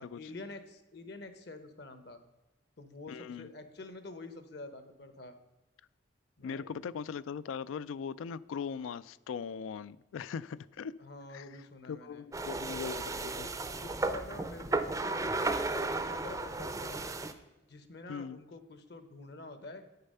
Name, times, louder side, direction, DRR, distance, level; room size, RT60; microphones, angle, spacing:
voice 1, 0.0-2.2 2.8-5.3 6.4-6.8 11.0-12.2 13.0-17.0 17.7-19.8, left 2 dB, 55° left, 10 dB, 0.9 m, -47 dB
voice 2, 3.1-3.5 6.4-10.9 11.3-11.5 11.9-13.5 18.1-18.4, left 6 dB, 85° left, 18 dB, 0.3 m, -40 dB
sound 1, 12.3-17.3, right 3 dB, 15° right, 0.4 m, -34 dB
9.0 x 6.7 x 5.5 m, 1.1 s
head